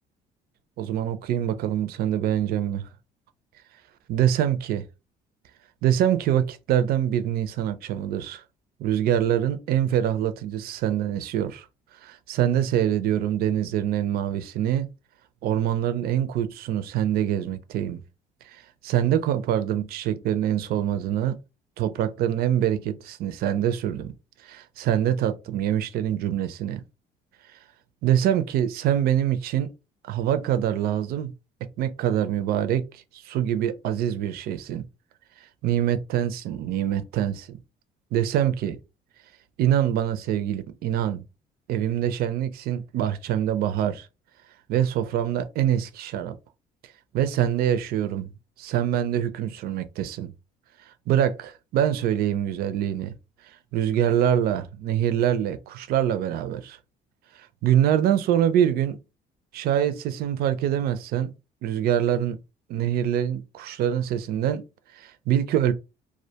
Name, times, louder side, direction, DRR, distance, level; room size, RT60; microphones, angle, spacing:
voice 1, 0.8-2.8 4.1-4.8 5.8-8.4 8.8-11.7 12.0-14.9 15.4-18.0 18.5-21.4 21.8-24.1 24.4-26.8 28.0-29.7 30.1-31.3 31.8-34.8 35.6-37.6 38.1-38.8 39.6-41.2 41.7-44.1 44.7-46.3 47.1-48.3 48.6-50.3 51.1-53.1 53.7-56.8 57.4-59.0 59.5-61.3 61.6-62.4 62.7-64.6 64.9-65.7, right 10 dB, 65° right, 0.4 m, -24 dB
2.3 x 2.1 x 2.7 m
cardioid pair, 110°, 17 cm